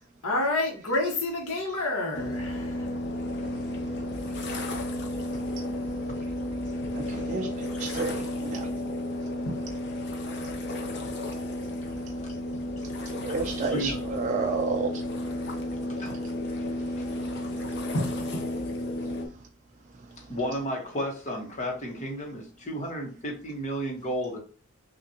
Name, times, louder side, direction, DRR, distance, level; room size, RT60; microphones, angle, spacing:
voice 1, 0.2-3.1 9.4-9.6 17.9-18.4, left 2 dB, 85° left, 1.2 m, -29 dB
sound 1, 2.1-19.3, left 1 dB, 50° left, 0.7 m, -33 dB
voice 2, 7.1-7.5 7.8-8.6 13.2-14.9, right 4 dB, 35° right, 0.4 m, -30 dB
voice 3, 13.4-14.0 16.0-16.2 16.5-16.6 20.3-24.4, equal, 35° left, 1.1 m, -33 dB
5.8 x 2.4 x 2.8 m
head